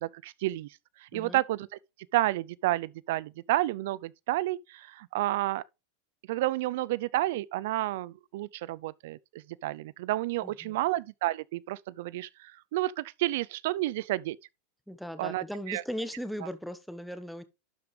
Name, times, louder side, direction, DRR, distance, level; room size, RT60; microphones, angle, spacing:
voice 1, 0.0-1.7 2.1-5.6 6.3-14.4 15.2-15.8, right 16 dB, 65° right, 0.4 m, -31 dB
voice 2, 10.4-10.8 14.9-17.4, equal, ahead, 1.2 m, -38 dB
12.0 x 5.2 x 3.2 m
supercardioid pair, 135°, 0 cm